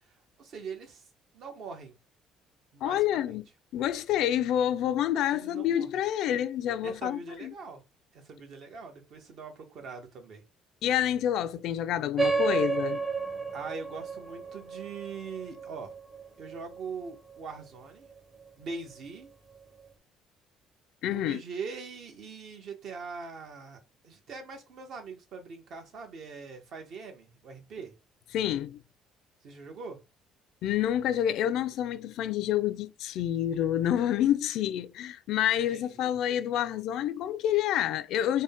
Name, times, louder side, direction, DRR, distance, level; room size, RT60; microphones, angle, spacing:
voice 1, 0.4-1.0 1.3-1.9 2.7-3.3 5.3-6.0 6.8-7.8 8.1-10.4 13.5-15.9 16.4-18.1 18.6-19.3 21.1-27.9 29.4-30.0 35.7-36.1, right 5 dB, 55° right, 1.1 m, -42 dB
voice 2, 2.8-3.4 3.7-7.5 10.8-13.0 21.0-21.4 28.3-28.8 30.6-38.4, left 11 dB, 70° left, 0.3 m, -28 dB
sound 1, 12.2-17.1, right 4 dB, 25° right, 0.9 m, -31 dB
3.7 x 2.1 x 3.6 m
cardioid pair, 130°, 0 cm